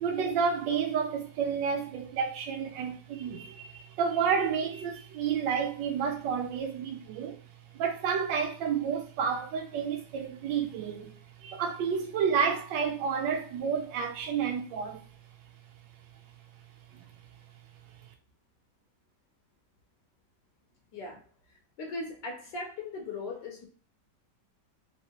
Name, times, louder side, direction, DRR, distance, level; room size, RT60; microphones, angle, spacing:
voice 1, 0.0-7.4 7.7-11.1 11.4-15.0, right 6 dB, 85° right, 1.3 m, -30 dB
voice 2, 20.9-21.2 21.8-23.7, left 3 dB, 80° left, 1.4 m, -38 dB
3.6 x 2.9 x 2.8 m
omnidirectional pair, 1.9 m